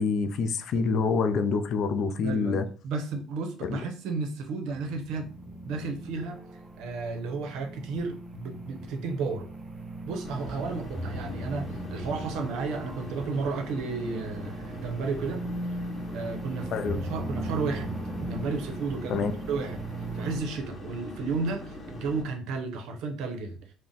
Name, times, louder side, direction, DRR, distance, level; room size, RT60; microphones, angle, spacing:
voice 1, 0.0-2.7 3.6-3.8 16.7-17.0 19.1-19.3, left 4 dB, 60° left, 0.4 m, -26 dB
voice 2, 2.2-2.6 2.8-5.3 5.7-6.4 6.8-9.5 10.0-15.4 16.1-17.9 18.2-19.8 20.1-23.6, right 4 dB, 75° right, 0.7 m, -33 dB
sound 1, 4.7-20.4, right 2 dB, 30° right, 0.5 m, -38 dB
sound 2, 10.2-22.2, left 1 dB, 30° left, 0.9 m, -42 dB
2.4 x 2.1 x 3.8 m
supercardioid pair, 80°, 0 cm